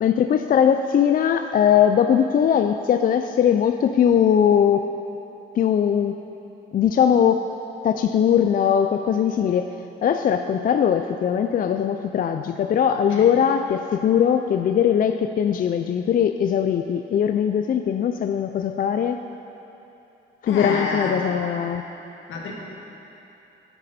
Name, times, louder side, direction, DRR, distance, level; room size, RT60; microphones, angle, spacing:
voice 1, 0.0-4.9 5.5-6.2 6.7-7.5 7.8-9.7 10.0-19.2 20.4-21.8, left 8 dB, 45° left, 7 dB, 0.4 m, -20 dB
voice 2, 20.5-21.2 22.3-22.5, left 3 dB, 80° left, -2 dB, 1.9 m, -28 dB
12.0 x 10.0 x 4.3 m, 2.9 s
cardioid pair, 90°, 20 cm